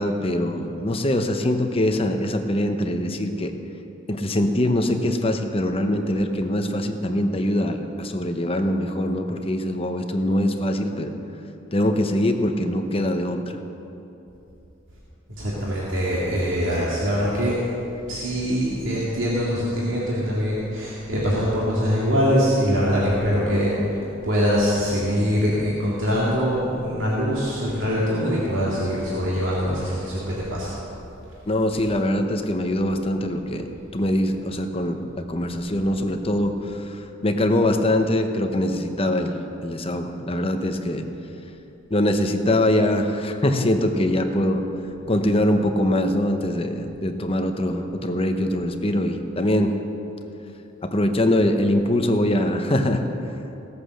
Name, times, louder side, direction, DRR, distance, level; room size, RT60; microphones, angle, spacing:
voice 1, 0.0-3.5 4.1-11.1 11.7-13.6 31.5-33.7 33.9-36.9 37.2-39.3 39.6-41.0 41.9-44.6 45.1-49.8 50.8-53.0, left 1 dB, 30° left, 5 dB, 0.9 m, -23 dB
voice 2, 15.4-17.6 18.1-30.7, equal, 85° right, -6 dB, 2.2 m, -23 dB
16.5 x 8.5 x 6.4 m, 2.9 s
head